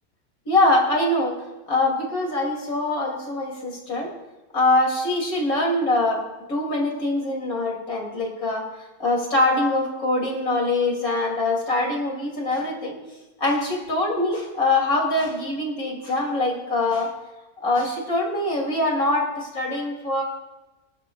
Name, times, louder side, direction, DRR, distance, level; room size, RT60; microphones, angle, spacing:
voice 1, 0.4-1.4 1.7-4.1 4.5-6.2 6.5-8.6 9.0-13.0 13.4-17.1 17.6-20.2, left 2 dB, 65° left, 0 dB, 3.2 m, -23 dB
24.5 x 11.0 x 2.4 m, 1.1 s
omnidirectional pair, 1.6 m